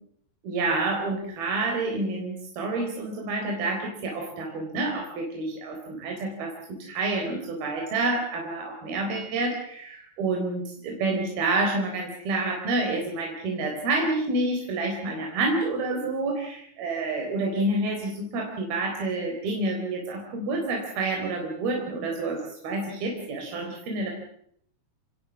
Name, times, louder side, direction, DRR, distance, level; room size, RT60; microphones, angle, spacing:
voice 1, 0.4-24.1, right 2 dB, 70° right, 1 dB, 5.7 m, -28 dB
27.5 x 20.5 x 7.2 m, 0.67 s
omnidirectional pair, 4.4 m